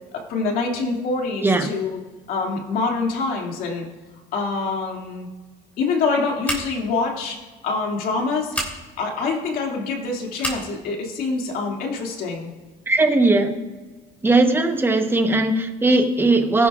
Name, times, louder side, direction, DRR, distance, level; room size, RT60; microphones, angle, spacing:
voice 1, 0.1-2.0 2.3-3.9 4.3-5.3 5.8-7.4 7.6-8.5 9.0-12.5, left 4 dB, 55° left, 1 dB, 2.4 m, -25 dB
Scissors, 6.4-6.9 8.5-8.7 10.4-10.7, equal, 10° left, 3.1 m, -28 dB
voice 2, 12.9-13.7 14.2-16.7, right 2 dB, 15° right, 6 dB, 1.0 m, -18 dB
18.5 x 11.0 x 2.5 m, 1.4 s
cardioid pair, 140°, 17 cm